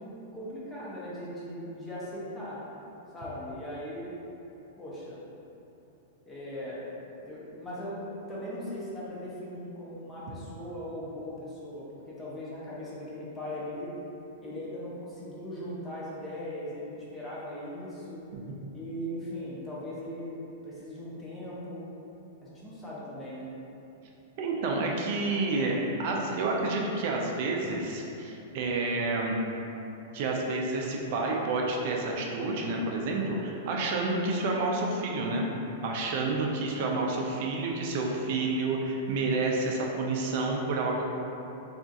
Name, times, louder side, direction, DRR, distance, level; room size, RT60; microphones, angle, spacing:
voice 1, 0.3-2.6 3.1-4.1 4.8-5.2 6.3-6.8 7.2-8.0 8.3-13.9 14.4-18.2 18.7-20.3 20.6-21.8 22.4-23.5, equal, 10° left, -8 dB, 0.5 m, -39 dB
voice 2, 24.4-29.4 30.1-35.5 35.8-41.0, right 3 dB, 45° right, 0 dB, 0.4 m, -29 dB
2.4 x 2.4 x 3.9 m, 2.9 s
supercardioid pair, 165°, 0 cm